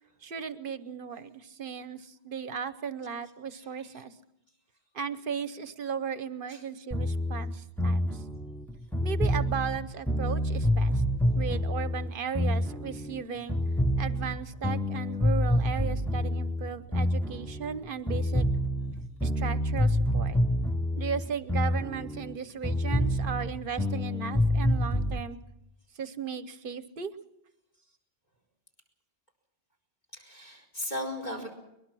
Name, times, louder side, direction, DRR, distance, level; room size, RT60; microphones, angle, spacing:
voice 1, 0.2-4.1 4.9-8.1 9.0-10.9 11.3-13.6 14.0-18.4 19.2-20.4 20.9-25.4 26.0-27.1, right 6 dB, 55° right, 13 dB, 1.1 m, -36 dB
voice 2, 3.5-4.0 6.5-6.6 30.1-31.5, left 1 dB, 40° left, 5 dB, 4.8 m, -37 dB
sound 1, 6.9-13.2 13.5-17.8 18.1-22.4 22.6-25.2, left 1 dB, ahead, 0.7 m, -27 dB
22.5 x 21.5 x 6.2 m, 0.86 s
omnidirectional pair, 1.2 m